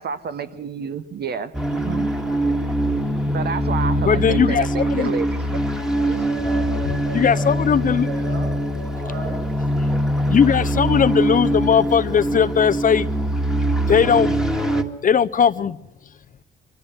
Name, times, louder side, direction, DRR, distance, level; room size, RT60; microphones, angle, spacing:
voice 1, 0.0-2.1 3.3-5.3, right 6 dB, 55° right, 12 dB, 1.1 m, -29 dB
sound 1, 1.5-14.8, right 1 dB, 5° right, 1.9 m, -23 dB
voice 2, 4.0-5.1 7.1-8.1 10.3-13.1 13.9-14.3 15.0-15.8, left 7 dB, 45° left, 16 dB, 0.7 m, -18 dB
voice 3, 6.0-7.1 7.3-7.4 7.9-8.5 8.9-9.4, right 1 dB, 90° right, -2 dB, 6.6 m, -36 dB
24.0 x 14.5 x 7.9 m, 0.85 s
cardioid pair, 90°, 20 cm